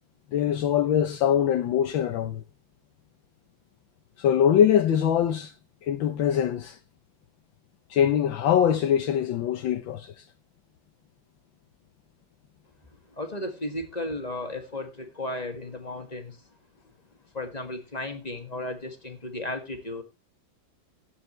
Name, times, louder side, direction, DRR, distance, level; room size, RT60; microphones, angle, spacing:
voice 1, 0.3-2.4 4.2-5.5 5.8-6.8 7.9-10.2, left 9 dB, 75° left, 1.6 m, -23 dB
voice 2, 13.1-16.4 17.3-20.0, left 1 dB, 20° left, 1.9 m, -34 dB
15.5 x 9.5 x 3.2 m
omnidirectional pair, 2.2 m